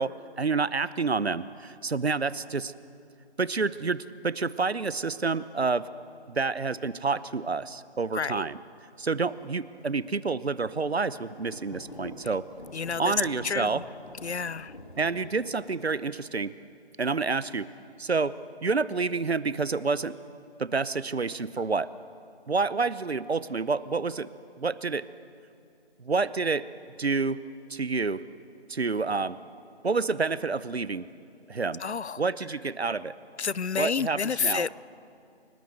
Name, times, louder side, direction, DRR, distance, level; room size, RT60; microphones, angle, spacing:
voice 1, 0.0-2.7 3.4-5.9 6.3-8.6 9.0-12.5 13.0-13.8 15.0-16.5 17.0-17.7 18.0-18.4 18.6-20.1 20.6-21.9 22.5-24.3 24.6-25.0 26.0-26.7 27.0-27.4 27.7-28.2 28.7-29.4 29.8-31.1 31.5-31.8 32.2-33.1 33.8-34.7, right 4 dB, 70° right, 16 dB, 1.0 m, -28 dB
Thunder / Rain, 10.8-16.3, left 1 dB, 50° left, 2.4 m, -47 dB
voice 2, 12.7-13.1 13.4-13.8 14.2-14.7 31.8-32.2 33.4-34.7, left 6 dB, 80° left, 21 dB, 0.7 m, -29 dB
29.0 x 19.0 x 7.9 m, 2.6 s
figure-of-eight pair, 180°, 33 cm